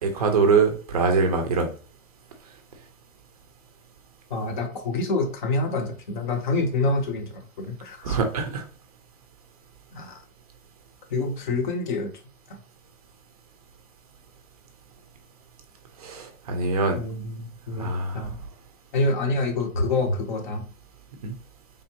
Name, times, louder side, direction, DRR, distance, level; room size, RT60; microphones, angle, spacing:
voice 1, 0.0-1.7 8.0-8.6 16.0-17.0 17.8-18.3 21.2-21.3, right 4 dB, 25° right, 5 dB, 0.6 m, -23 dB
voice 2, 4.3-8.2 9.9-10.2 11.1-12.1 12.5-12.6 17.0-18.4 18.9-20.6, left 2 dB, 35° left, 6 dB, 0.8 m, -27 dB
4.1 x 3.5 x 2.8 m, 0.39 s
hypercardioid pair, 160°, 44 cm